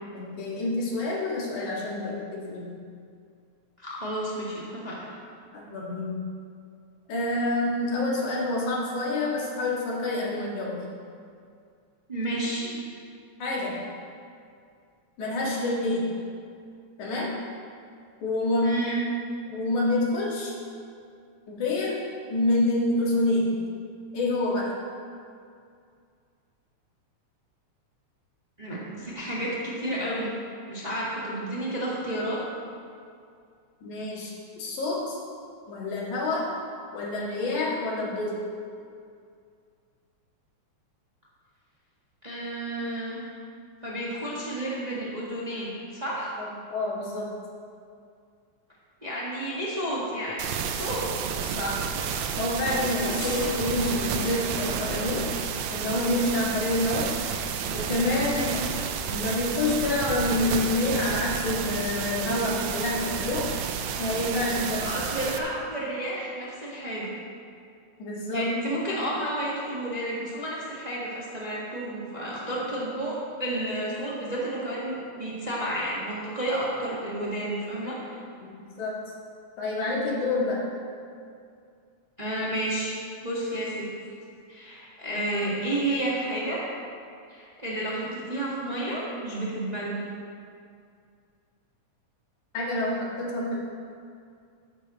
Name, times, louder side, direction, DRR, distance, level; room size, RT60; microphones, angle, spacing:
voice 1, 0.1-2.7 5.5-6.3 7.1-10.8 12.6-12.8 13.4-13.8 15.2-16.2 17.0-17.4 18.2-18.8 19.4-20.5 21.5-22.0 22.3-23.7 24.1-24.7 33.8-35.2 35.7-36.5 36.9-38.4 46.4-47.3 51.4-51.8 52.4-55.3 55.7-58.7 59.1-63.6 64.0-65.0 68.0-68.5 78.4-79.0 79.6-80.7 92.5-93.6, left 2 dB, 85° left, -4 dB, 3.4 m, -28 dB
voice 2, 3.8-5.0 12.1-12.7 18.6-19.0 28.6-30.3 30.7-32.4 42.2-43.2 43.8-46.4 49.0-50.5 50.7-51.1 64.8-67.1 68.3-78.2 82.2-83.9 84.5-86.6 87.3-90.0, right 1 dB, 20° right, -7 dB, 1.4 m, -31 dB
sound 1, 50.4-65.4, right 7 dB, 75° right, 1.8 m, -31 dB
sound 2, 52.7-56.0 57.5-57.6, equal, 60° right, 0.3 m, -37 dB
14.0 x 10.5 x 3.1 m, 2.3 s
omnidirectional pair, 3.3 m